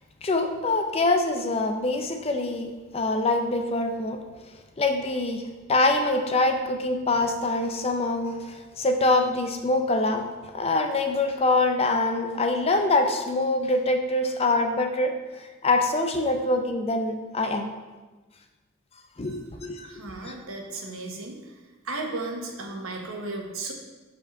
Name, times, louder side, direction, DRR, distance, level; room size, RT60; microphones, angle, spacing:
voice 1, 0.2-4.2 4.8-10.3 10.5-17.7 19.2-19.9 20.2-20.3, left 2 dB, 30° left, 5 dB, 0.5 m, -25 dB
voice 2, 19.9-21.5 21.8-23.7, right 2 dB, 75° right, 2 dB, 1.1 m, -35 dB
5.3 x 4.4 x 5.7 m, 1.2 s
head